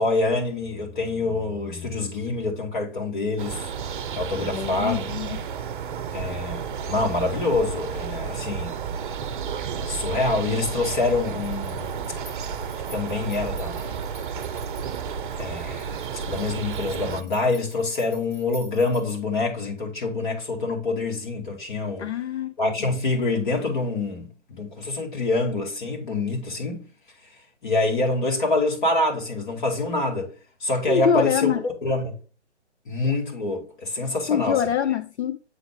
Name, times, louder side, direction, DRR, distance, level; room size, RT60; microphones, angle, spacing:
voice 1, 0.0-3.7 4.1-5.1 6.1-8.8 9.8-11.9 12.9-14.0 15.4-15.9 16.3-22.1 22.6-26.8 27.6-30.3 30.6-32.1 32.9-34.6, left 2 dB, 45° left, 2.2 m, -26 dB
sound 1, 3.4-17.2, right 6 dB, 45° right, 0.6 m, -32 dB
voice 2, 4.4-5.4 22.0-22.9 30.9-31.6 34.3-35.4, left 8 dB, 65° left, 0.5 m, -25 dB
sound 2, 9.0-19.2, right 1 dB, 20° left, 3.0 m, -51 dB
7.7 x 4.0 x 3.7 m
figure-of-eight pair, 140°, 35 cm